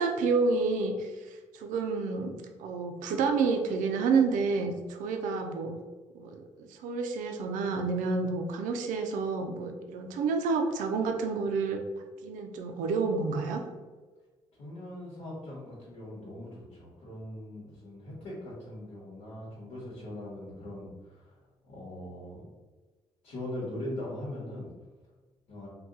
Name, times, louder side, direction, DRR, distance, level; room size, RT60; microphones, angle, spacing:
voice 1, 0.0-2.3 2.6-5.7 6.1-11.8 12.2-13.6, right 4 dB, 80° right, 4 dB, 0.4 m, -29 dB
voice 2, 14.6-21.3 21.7-22.4 23.2-24.7 25.5-25.7, left 1 dB, 80° left, -7 dB, 1.1 m, -41 dB
2.7 x 2.2 x 3.7 m, 1.3 s
supercardioid pair, 70°, 13 cm